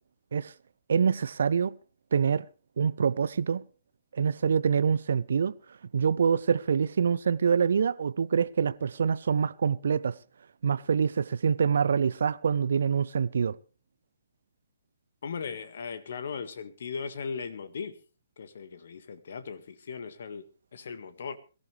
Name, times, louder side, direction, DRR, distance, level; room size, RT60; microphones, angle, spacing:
voice 1, 0.9-1.7 2.1-2.5 2.8-3.6 4.1-5.5 5.9-10.1 10.6-13.6, right 6 dB, 60° right, 0.6 m, -25 dB
voice 2, 15.2-18.0 18.4-20.5 20.7-21.4, left 5 dB, 55° left, 1.8 m, -38 dB
22.5 x 14.5 x 3.3 m
figure-of-eight pair, 130°, 0 cm